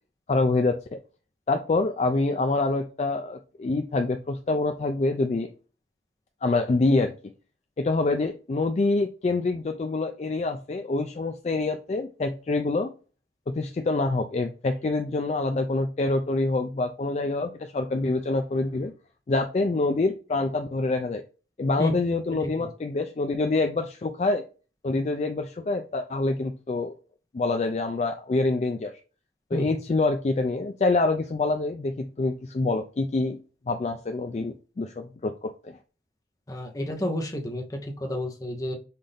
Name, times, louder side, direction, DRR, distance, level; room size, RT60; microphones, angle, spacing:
voice 1, 0.3-0.8 1.5-5.5 6.4-7.1 7.8-12.9 13.5-18.9 19.3-21.2 21.6-24.4 24.8-26.9 27.3-28.9 29.5-33.4 33.7-35.8, left 3 dB, 40° left, 6 dB, 0.3 m, -26 dB
voice 2, 36.5-38.7, left 1 dB, 20° left, 2 dB, 0.8 m, -31 dB
5.6 x 2.6 x 3.4 m, 0.35 s
head